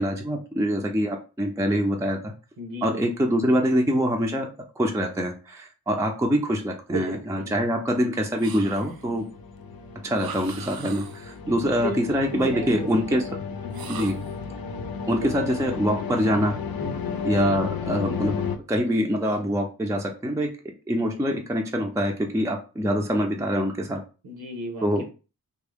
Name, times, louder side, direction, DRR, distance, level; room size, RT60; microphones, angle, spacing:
voice 1, 0.0-2.3 2.8-4.5 4.8-9.2 10.0-13.2 13.9-14.1 15.1-16.5 17.2-18.4 18.7-20.5 20.9-24.0 24.8-25.0, equal, 10° right, 2 dB, 0.4 m, -24 dB
voice 2, 2.6-2.9 6.9-7.9 11.5-11.6 11.8-12.0 12.3-13.2 13.6-14.2 15.2-15.3 16.8-17.2 24.2-25.1, right 1 dB, 85° right, 2 dB, 1.1 m, -35 dB
sound 1, 8.4-9.2 10.1-11.4 13.7-14.4, right 7 dB, 70° right, 0.5 m, -40 dB
sound 2, 8.6-18.6, left 6 dB, 70° left, 0.6 m, -33 dB
3.5 x 2.1 x 3.4 m, 0.33 s
wide cardioid pair, 100°, 38 cm